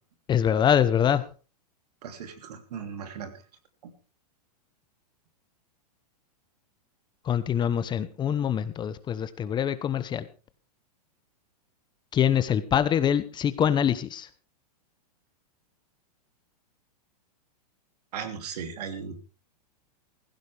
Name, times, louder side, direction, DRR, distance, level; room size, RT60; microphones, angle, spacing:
voice 1, 0.3-1.2 7.2-10.3 12.1-14.3, left 9 dB, 20° left, 14 dB, 0.9 m, -24 dB
voice 2, 2.0-3.3 3.8-3.9 18.1-19.2, right 7 dB, 75° right, 7 dB, 3.1 m, -37 dB
16.5 x 15.5 x 3.5 m, 0.35 s
hypercardioid pair, 130°, 21 cm